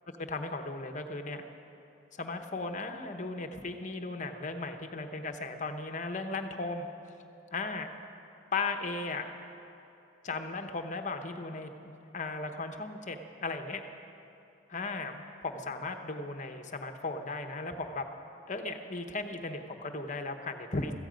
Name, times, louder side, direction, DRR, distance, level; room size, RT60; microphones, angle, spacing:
voice 1, 0.2-1.4 2.2-6.9 7.5-7.9 8.5-9.3 10.2-13.8 14.7-18.0 18.5-20.9, left 3 dB, 40° left, 6 dB, 1.0 m, -36 dB
16.0 x 14.5 x 5.2 m, 3.0 s
head